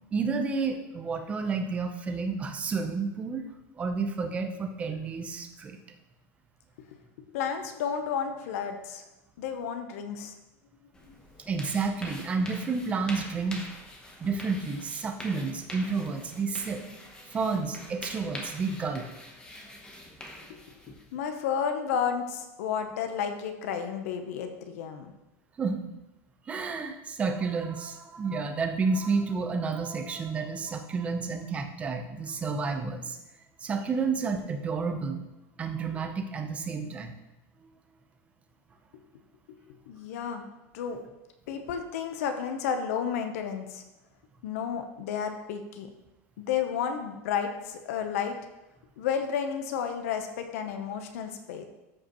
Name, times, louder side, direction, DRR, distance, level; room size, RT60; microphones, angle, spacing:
voice 1, 0.1-3.4 3.7-5.8 11.5-13.6 14.2-16.8 17.3-19.1 25.6-25.8 26.5-33.2 33.6-35.2 35.6-37.1, right 4 dB, 15° right, 5 dB, 0.7 m, -30 dB
voice 2, 7.3-9.1 9.4-10.3 11.0-11.2 21.1-25.1 39.9-40.5 40.7-41.0 41.5-43.8 44.4-45.9 46.4-48.4 49.0-51.6, left 7 dB, 85° left, 6 dB, 0.8 m, -32 dB
sound 1, 10.9-21.2, left 1 dB, 10° left, 0.9 m, -45 dB
13.0 x 5.0 x 3.0 m, 1.0 s
supercardioid pair, 165°, 8 cm